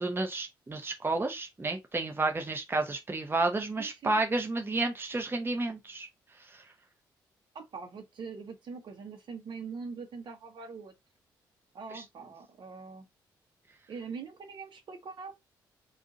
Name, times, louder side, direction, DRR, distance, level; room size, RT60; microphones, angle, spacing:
voice 1, 0.0-6.1 6.5-6.6 11.9-12.0, right 2 dB, 20° right, 0.9 m, -31 dB
voice 2, 3.8-4.2 7.5-10.9 11.7-13.1 13.9-15.3, right 5 dB, 50° right, 1.0 m, -43 dB
3.7 x 2.5 x 3.5 m
figure-of-eight pair, 40°, 10 cm